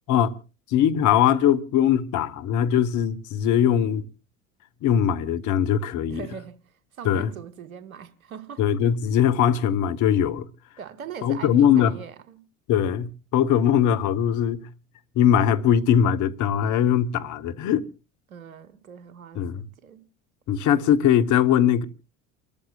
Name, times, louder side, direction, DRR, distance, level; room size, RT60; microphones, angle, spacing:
voice 1, 0.7-4.1 4.8-6.2 7.0-7.3 8.6-10.5 11.2-11.9 12.7-14.6 15.1-17.9 19.3-19.6 20.5-21.9, left 9 dB, 45° left, 1.2 m, -21 dB
voice 2, 6.1-8.6 10.8-12.4 18.3-20.0, right 7 dB, 80° right, 1.3 m, -41 dB
29.0 x 14.0 x 2.4 m
figure-of-eight pair, 70°, 41 cm